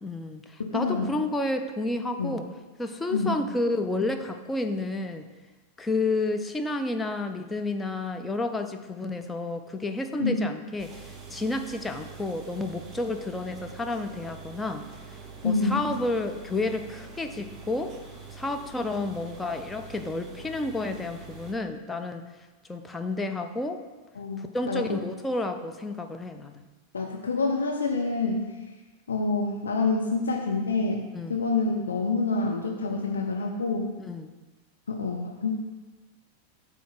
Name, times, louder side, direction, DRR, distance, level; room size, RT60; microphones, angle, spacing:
voice 1, 0.0-2.5 2.8-5.2 5.8-14.8 15.4-17.9 18.3-22.2 22.7-23.8 24.4-26.6 31.1-31.4 34.0-34.3, left 2 dB, 10° left, 6 dB, 0.5 m, -30 dB
voice 2, 0.6-1.1 2.2-2.4 3.1-3.4 10.2-10.4 15.4-15.9 24.2-25.1 26.9-28.5 29.1-33.9 34.9-35.6, left 3 dB, 70° left, 1 dB, 0.5 m, -27 dB
sound 1, 10.8-21.5, right 5 dB, 25° right, 0.8 m, -45 dB
8.2 x 2.8 x 5.7 m, 1.3 s
figure-of-eight pair, 90°, 0 cm